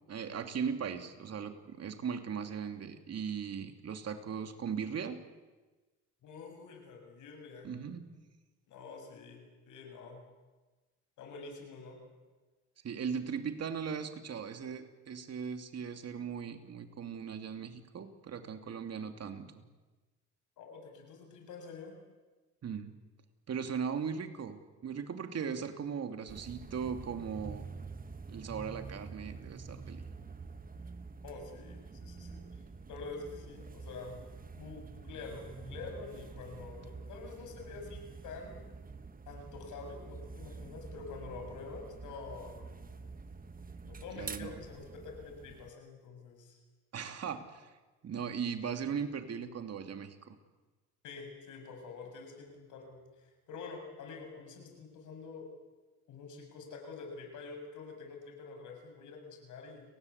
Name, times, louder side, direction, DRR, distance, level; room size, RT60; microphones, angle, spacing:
voice 1, 0.1-5.2 7.6-8.1 12.8-19.6 22.6-22.9 23.5-27.7 28.3-30.0 44.2-44.6 46.9-47.7 48.0-50.4, right 7 dB, 55° right, 7 dB, 2.9 m, -38 dB
voice 2, 6.2-7.7 8.7-10.2 11.2-12.0 20.6-22.0 31.2-32.4 32.9-34.2 34.5-38.6 39.3-43.1 43.8-46.6 51.0-55.5 56.1-59.8, left 4 dB, 80° left, 3 dB, 7.3 m, -47 dB
sound 1, 26.3-45.7, right 4 dB, 30° right, 1.4 m, -47 dB
30.0 x 19.5 x 8.3 m, 1.2 s
cardioid pair, 90°, 30 cm